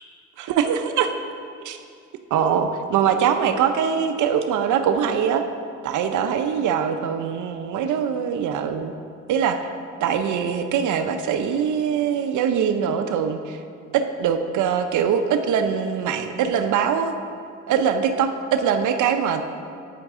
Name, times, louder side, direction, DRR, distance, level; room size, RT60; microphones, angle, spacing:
voice 1, 0.4-1.2 1.6-1.8 2.3-5.5 5.8-8.9 9.3-9.6 10.0-13.6 13.9-17.1 17.7-19.4, right 7 dB, 75° right, 7 dB, 0.6 m, -22 dB
9.1 x 9.0 x 3.6 m, 2.4 s
cardioid pair, 90°, 30 cm